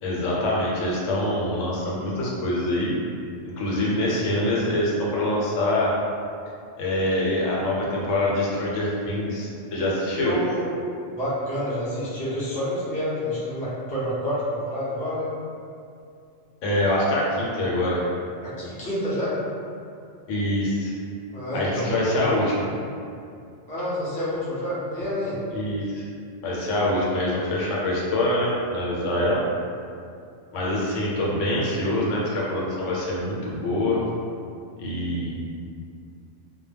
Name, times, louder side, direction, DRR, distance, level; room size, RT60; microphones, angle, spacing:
voice 1, 0.0-2.9 3.4-5.9 6.8-10.3 16.6-18.1 20.3-20.9 21.5-22.5 25.5-26.1 26.4-29.4 30.5-34.0 34.8-35.4, left 1 dB, 75° left, -4 dB, 0.9 m, -25 dB
voice 2, 10.2-10.6 11.2-15.3 18.4-19.4 21.3-22.3 23.7-25.4, left 1 dB, 10° left, -10 dB, 0.3 m, -28 dB
2.1 x 2.1 x 3.3 m, 2.5 s
omnidirectional pair, 1.3 m